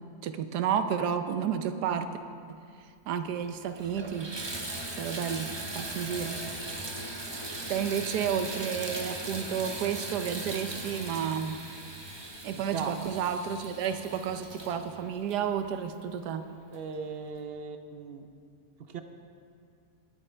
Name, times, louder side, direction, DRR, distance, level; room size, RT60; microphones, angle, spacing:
voice 1, 0.2-2.1 3.1-4.3 4.9-5.5 5.7-6.4 7.7-11.6 12.4-16.4, right 8 dB, 85° right, 9 dB, 1.3 m, -31 dB
Water tap faucet / Bathtub (filling or washing), 3.1-3.2 3.7-16.1 16.7-16.8 17.3-17.4, right 2 dB, 20° right, 0.8 m, -39 dB
voice 2, 12.6-13.0 16.7-18.3 18.8-19.0, right 5 dB, 65° right, 7 dB, 0.6 m, -38 dB
19.5 x 9.4 x 3.3 m, 2.3 s
omnidirectional pair, 1.7 m